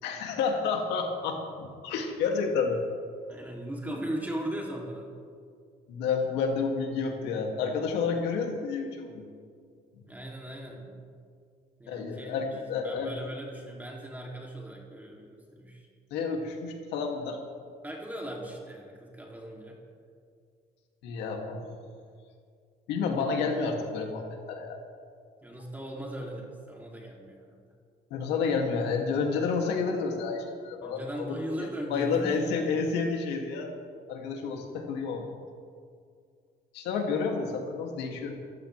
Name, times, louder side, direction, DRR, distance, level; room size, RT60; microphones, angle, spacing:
voice 1, 0.0-2.8 3.8-4.0 5.9-9.3 11.9-13.1 16.1-17.4 21.0-21.6 22.9-24.8 28.1-33.7 34.1-35.3 36.7-38.4, left 5 dB, 90° left, 1 dB, 2.5 m, -30 dB
voice 2, 3.3-5.1 8.2-8.3 10.1-11.1 11.8-12.4 12.8-15.9 17.8-19.8 25.4-27.5 30.8-32.8, right 1 dB, 10° right, -2 dB, 2.9 m, -38 dB
27.5 x 15.5 x 3.4 m, 2.2 s
cardioid pair, 110°, 17 cm